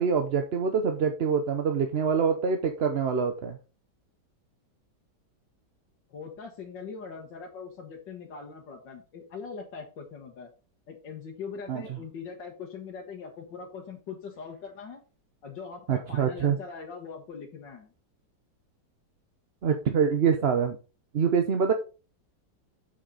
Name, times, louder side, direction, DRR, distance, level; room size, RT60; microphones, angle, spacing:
voice 1, 0.0-3.6 11.7-12.0 15.9-16.6 19.6-20.8 21.1-21.7, right 6 dB, 50° right, 6 dB, 0.8 m, -25 dB
voice 2, 6.1-10.5 10.9-15.0 15.4-17.9, left 5 dB, 90° left, 0 dB, 2.1 m, -41 dB
7.4 x 6.4 x 4.0 m, 0.33 s
omnidirectional pair, 1.9 m